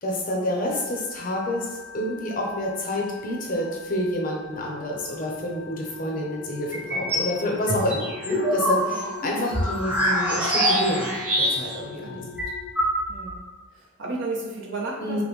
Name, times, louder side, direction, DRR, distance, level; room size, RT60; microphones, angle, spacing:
voice 1, 0.0-12.2 15.0-15.2, left 1 dB, 45° left, -1 dB, 0.7 m, -28 dB
sound 1, 0.7-12.7, left 7 dB, 85° left, 0.3 m, -42 dB
sound 2, 6.7-7.3 7.7-11.9 12.1-12.2 12.4-13.4, equal, 10° right, 0.7 m, -24 dB
voice 2, 12.0-12.4 13.1-13.4 13.7-15.2, right 2 dB, 70° right, -3 dB, 0.9 m, -34 dB
5.2 x 2.1 x 3.1 m, 1.3 s
head